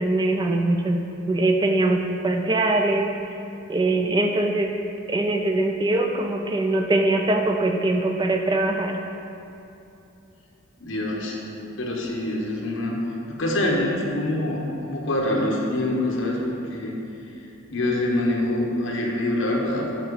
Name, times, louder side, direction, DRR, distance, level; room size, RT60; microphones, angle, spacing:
voice 1, 0.0-3.1 3.7-4.7 5.1-9.0, right 2 dB, 20° right, 3 dB, 0.3 m, -22 dB
voice 2, 10.8-11.4 11.8-13.0 13.3-16.9 17.7-20.0, left 1 dB, 65° left, -2 dB, 1.2 m, -25 dB
7.4 x 5.0 x 4.9 m, 2.8 s
head